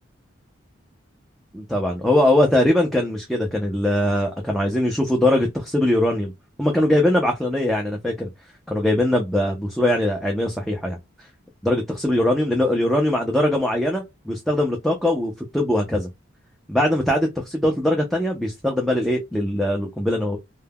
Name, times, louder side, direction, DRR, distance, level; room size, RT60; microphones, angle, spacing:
voice 1, 1.5-6.3 6.6-8.3 8.7-11.0 11.6-16.1 16.7-20.4, left 1 dB, ahead, 0.4 m, -21 dB
2.2 x 2.0 x 3.4 m
head